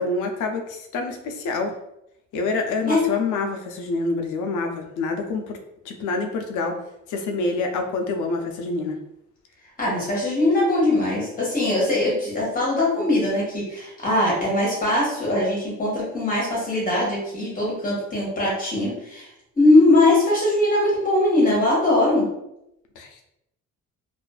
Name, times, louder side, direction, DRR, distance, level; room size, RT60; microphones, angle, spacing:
voice 1, 0.0-1.7 2.3-5.6 5.9-6.8 7.1-9.0 23.0-23.3, left 3 dB, 85° left, 3 dB, 0.5 m, -27 dB
voice 2, 9.8-19.3 19.6-22.3, left 1 dB, 30° left, -5 dB, 1.1 m, -21 dB
2.5 x 2.3 x 2.3 m, 0.83 s
cardioid pair, 130°, 30 cm